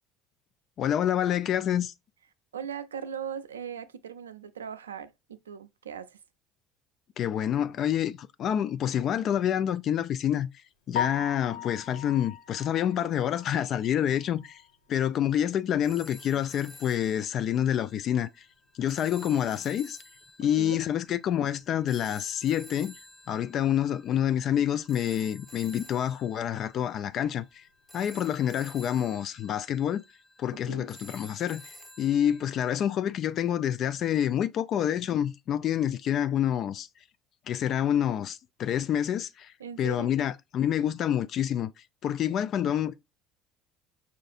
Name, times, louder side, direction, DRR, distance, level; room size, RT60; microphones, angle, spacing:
voice 1, 0.8-1.9 7.2-14.6 14.9-18.5 18.8-20.0 20.4-22.9 23.3-27.6 27.9-30.0 30.4-36.9 37.5-41.7 42.0-43.0, left 10 dB, 50° left, 0.3 m, -28 dB
voice 2, 2.5-6.2 20.4-20.8 30.7-30.9 39.6-40.1, right 8 dB, 90° right, 0.3 m, -39 dB
Piano, 10.9-14.9 15.3-15.4 15.9-16.0 16.3-16.4 19.5-19.6 28.1-28.3, left 8 dB, 75° left, 0.8 m, -38 dB
sound 1, 15.8-32.7, equal, 15° left, 0.8 m, -51 dB
5.5 x 2.5 x 2.4 m
hypercardioid pair, 65°, 0 cm